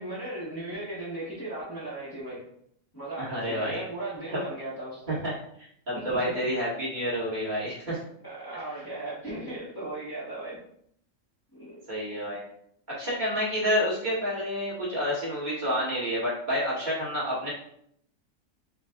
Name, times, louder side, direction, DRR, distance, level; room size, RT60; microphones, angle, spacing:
voice 1, 0.0-2.4 2.9-5.2 5.9-6.3 8.2-10.6 11.5-11.8, right 2 dB, 20° left, -8 dB, 1.0 m, -37 dB
voice 2, 3.2-3.8 4.3-4.4 5.1-5.3 5.9-8.0 11.9-12.4 12.9-17.5, equal, 35° right, -8 dB, 1.7 m, -29 dB
4.7 x 2.4 x 3.6 m, 0.69 s
omnidirectional pair, 1.4 m